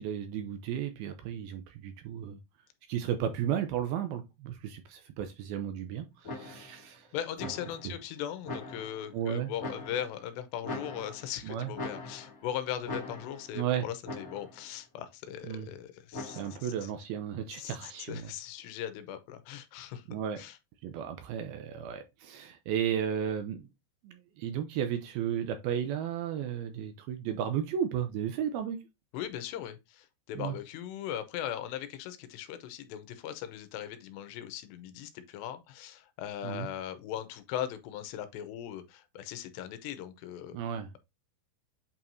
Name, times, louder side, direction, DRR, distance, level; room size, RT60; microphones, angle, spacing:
voice 1, 0.0-2.4 2.9-7.1 7.8-7.9 9.1-9.5 11.4-11.7 13.5-13.9 15.5-15.7 16.2-18.3 20.1-20.4 20.8-23.7 24.0-28.8 30.4-30.6 36.4-36.7 40.5-41.0, right 9 dB, 80° right, 2.3 m, -34 dB
sound 1, 6.2-6.8 7.4-8.0 8.4-9.1 9.6-10.2 10.6-11.4 11.7-12.5 12.8-13.6 14.0-14.6 16.1-16.7, left 2 dB, 20° left, 1.8 m, -41 dB
voice 2, 7.1-16.7 17.5-20.0 20.4-20.6 29.1-40.6, left 10 dB, 80° left, 3.0 m, -39 dB
8.5 x 4.6 x 2.6 m
omnidirectional pair, 4.9 m